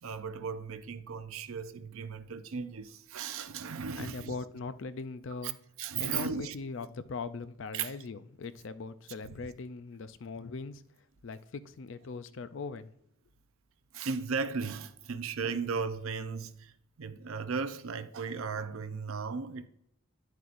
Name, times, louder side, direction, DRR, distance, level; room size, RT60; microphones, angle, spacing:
voice 1, 0.0-4.3 5.4-5.5 5.8-6.5 7.7-7.9 9.2-9.4 13.9-16.7 17.0-19.7, right 5 dB, 70° right, 0.5 m, -36 dB
voice 2, 4.0-5.6 6.0-10.8 11.2-12.9, left 4 dB, 55° left, 0.4 m, -40 dB
10.0 x 7.9 x 2.5 m
head